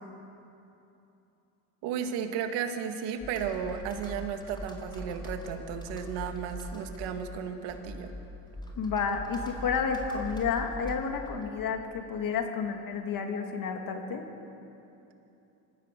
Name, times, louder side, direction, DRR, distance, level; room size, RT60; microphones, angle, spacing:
voice 1, 1.8-8.1, right 7 dB, 75° right, 6 dB, 2.1 m, -34 dB
Computer keyboard, 3.2-11.8, left 1 dB, 10° left, 3.7 m, -42 dB
voice 2, 8.8-14.2, left 6 dB, 50° left, 4 dB, 2.6 m, -31 dB
26.0 x 15.0 x 6.8 m, 2.9 s
supercardioid pair, 95°, 43 cm